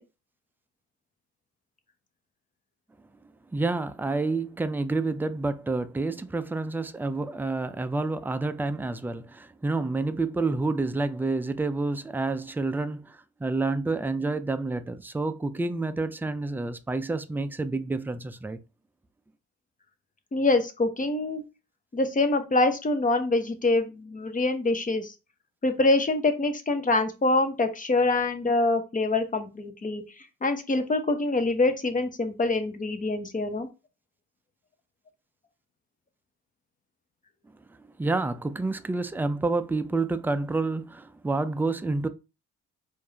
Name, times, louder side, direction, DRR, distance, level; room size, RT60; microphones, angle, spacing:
voice 1, 3.5-18.6 37.8-42.1, right 3 dB, 5° right, 0.3 m, -29 dB
voice 2, 20.3-21.4 21.9-25.1 25.6-30.0 30.4-33.7, left 2 dB, 25° left, 0.8 m, -25 dB
4.6 x 2.6 x 2.8 m
cardioid pair, 90°, 30 cm